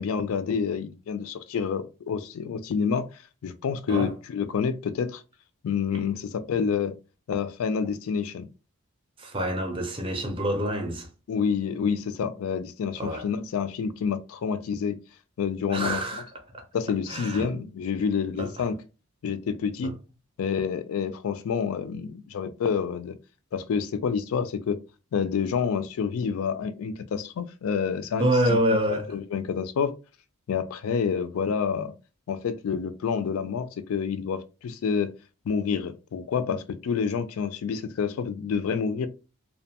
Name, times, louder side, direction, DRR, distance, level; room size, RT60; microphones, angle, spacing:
voice 1, 0.0-3.1 3.4-5.2 5.6-6.9 7.3-8.5 11.3-15.0 15.4-16.0 16.7-18.8 19.2-19.9 20.4-23.2 23.5-24.8 25.1-28.3 29.1-29.9 30.5-31.9 32.3-35.1 35.5-39.1, left 6 dB, 75° left, 0.3 m, -28 dB
voice 2, 9.2-11.1 13.0-13.3 15.7-16.2 16.5-16.6 17.1-17.5 18.4-18.6 19.8-19.9 28.2-29.1, right 1 dB, 25° right, 0.5 m, -27 dB
2.5 x 2.1 x 2.7 m
head